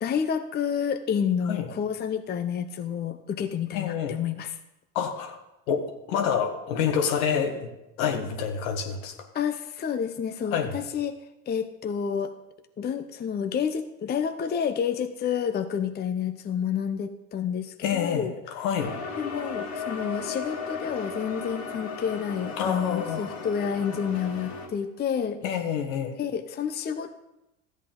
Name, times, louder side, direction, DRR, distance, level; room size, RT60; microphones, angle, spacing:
voice 1, 0.0-4.6 9.3-11.2 11.5-12.3 12.8-18.3 19.2-25.4 26.1-27.1, left 7 dB, 25° left, 8 dB, 0.6 m, -29 dB
voice 2, 3.7-4.2 4.9-5.4 5.7-7.7 8.0-9.1 10.5-10.7 17.8-19.0 22.6-23.3 25.4-26.1, left 7 dB, 75° left, 5 dB, 1.5 m, -27 dB
sound 1, 18.8-24.7, left 5 dB, 40° left, 2.0 m, -36 dB
13.5 x 8.3 x 3.8 m, 0.92 s
hypercardioid pair, 90°, 41 cm